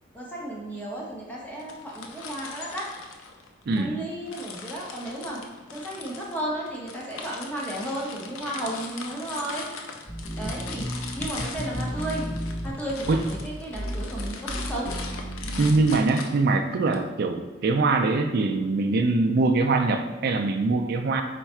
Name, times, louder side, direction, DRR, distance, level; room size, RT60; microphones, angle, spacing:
voice 1, 0.1-2.9 3.8-5.4 5.7-9.7 10.3-12.3 12.6-15.0, right 1 dB, 10° left, -4 dB, 0.8 m, -34 dB
sound 1, 1.6-3.8 4.3-17.0, left 5 dB, 80° left, 0.5 m, -40 dB
sound 2, 10.1-16.1, equal, 35° left, 1.1 m, -33 dB
voice 2, 15.6-21.2, right 3 dB, 50° right, 6 dB, 0.3 m, -23 dB
4.3 x 2.3 x 4.2 m, 1.2 s
head